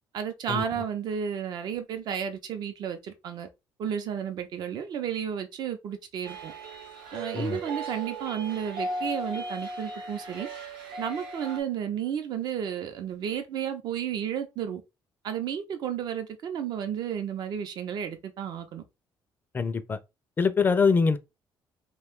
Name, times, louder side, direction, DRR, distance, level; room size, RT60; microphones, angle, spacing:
voice 1, 0.1-3.5 3.8-6.5 7.1-10.5 11.0-14.8 15.2-18.8, right 8 dB, 60° right, 0.6 m, -32 dB
sound 1, 6.2-11.6, right 2 dB, 90° right, 1.0 m, -37 dB
voice 2, 19.5-20.0 20.4-21.2, left 5 dB, 25° left, 0.4 m, -23 dB
2.6 x 2.3 x 3.5 m
cardioid pair, 125°, 8 cm